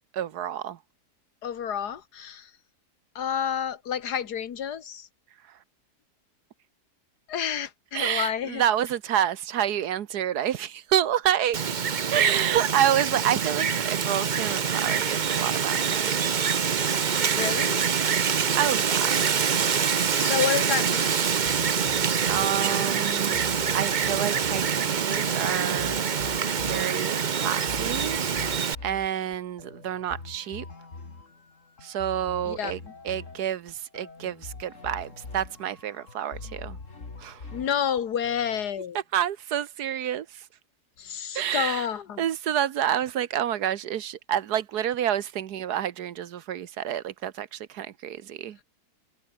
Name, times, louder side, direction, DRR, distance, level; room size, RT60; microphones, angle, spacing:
voice 1, 0.1-0.8 5.5-5.6 7.9-11.6 12.1-16.2 18.6-19.3 22.3-23.4 23.7-26.0 26.6-28.2 28.8-30.6 31.8-32.8 33.0-36.8 37.2-37.4 39.1-40.5 41.3-41.9 42.2-48.6, right 10 dB, 75° right, 1.5 m, -28 dB
voice 2, 1.4-2.5 3.2-5.1 7.3-8.6 17.3-17.9 20.2-21.2 32.5-32.9 37.5-39.0 41.0-42.2, left 8 dB, 80° left, 1.9 m, -29 dB
Wind, 11.5-28.7, right 7 dB, 40° right, 0.7 m, -25 dB
sound 1, 21.4-38.7, left 3 dB, 50° left, 3.2 m, -44 dB
omnidirectional pair, 1.7 m